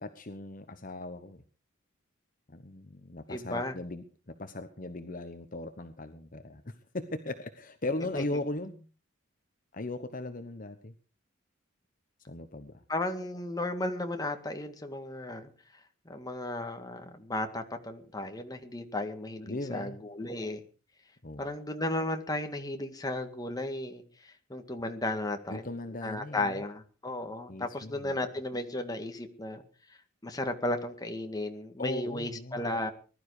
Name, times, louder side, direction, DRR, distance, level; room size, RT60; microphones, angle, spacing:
voice 1, 0.0-1.4 2.5-8.9 9.7-10.9 12.3-12.8 19.5-20.0 21.2-21.5 25.5-26.6 27.5-28.2 31.8-32.7, left 2 dB, 45° left, 8 dB, 1.1 m, -38 dB
voice 2, 3.3-3.8 8.1-8.2 12.9-15.5 16.1-20.6 21.4-25.7 26.0-29.6 29.9-32.9, left 1 dB, 20° left, 5 dB, 1.9 m, -35 dB
20.5 x 12.0 x 4.9 m, 0.38 s
head